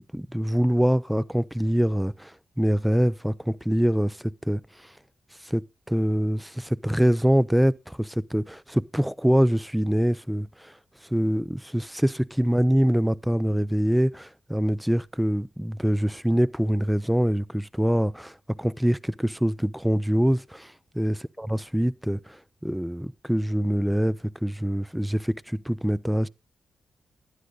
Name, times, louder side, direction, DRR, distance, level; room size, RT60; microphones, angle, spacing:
voice 1, 0.0-4.6 5.4-10.7 11.1-26.3, equal, 5° right, 0.5 m, -24 dB
11.5 x 9.5 x 3.8 m
supercardioid pair, 40°, 0 cm